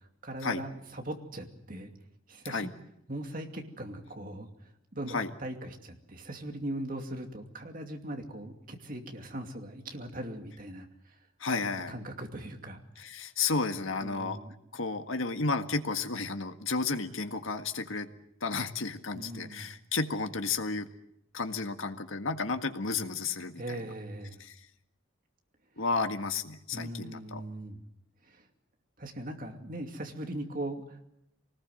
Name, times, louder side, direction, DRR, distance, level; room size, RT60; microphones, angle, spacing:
voice 1, 0.0-1.9 2.3-2.7 3.1-4.5 4.9-10.9 11.6-13.1 14.0-14.5 19.1-19.7 23.6-24.4 26.7-27.8 28.2-28.4 29.0-31.0, right 1 dB, 40° right, 4 dB, 2.6 m, -40 dB
voice 2, 11.4-11.9 13.0-14.4 14.7-18.1 18.4-20.9 21.3-23.8 24.4-24.6 25.8-27.4, left 4 dB, 75° left, 7 dB, 1.7 m, -32 dB
25.0 x 19.5 x 7.8 m, 0.79 s
head